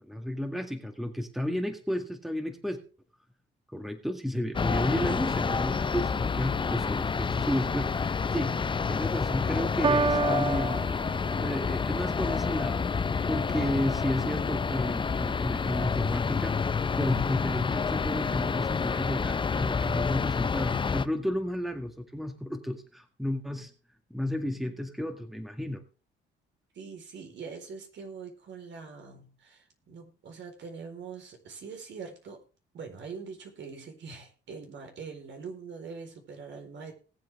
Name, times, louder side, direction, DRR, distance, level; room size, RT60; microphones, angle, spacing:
voice 1, 0.0-2.8 3.7-8.6 8.9-10.8 11.4-12.8 13.3-16.5 17.0-23.7 24.1-25.8, left 1 dB, ahead, 6 dB, 2.0 m, -32 dB
sound 1, 4.5-21.1, left 5 dB, 25° left, 0.6 m, -29 dB
Piano, 9.8-11.8, right 4 dB, 25° right, 0.6 m, -29 dB
voice 2, 26.7-32.4 32.7-36.9, right 5 dB, 65° right, 4 dB, 4.2 m, -43 dB
19.5 x 7.8 x 3.6 m, 0.35 s
cardioid pair, 90°, 20 cm